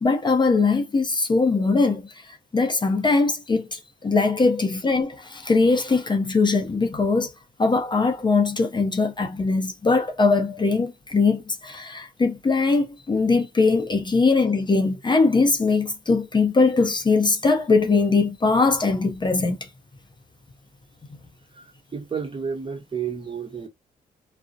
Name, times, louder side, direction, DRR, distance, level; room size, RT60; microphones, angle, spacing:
voice 1, 0.0-2.1 2.5-7.3 7.6-19.6, left 3 dB, 25° left, 0.5 m, -21 dB
voice 2, 21.5-23.7, right 6 dB, 30° right, 1.0 m, -31 dB
2.4 x 2.0 x 2.6 m
cardioid pair, 75°, 17 cm